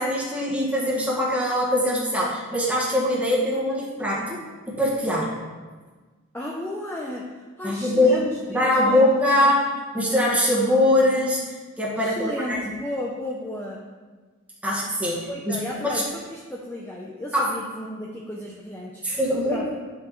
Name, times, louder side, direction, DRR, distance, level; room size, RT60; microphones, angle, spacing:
voice 1, 0.0-5.3 7.6-9.7 9.9-11.4 11.8-12.6 14.6-15.6 15.8-16.0 17.3-17.5 19.0-19.6, left 1 dB, 5° right, -6 dB, 1.7 m, -22 dB
voice 2, 6.3-9.5 11.9-13.8 15.3-19.0 19.5-19.8, left 1 dB, 10° left, -3 dB, 0.6 m, -34 dB
10.0 x 6.0 x 3.2 m, 1.4 s
head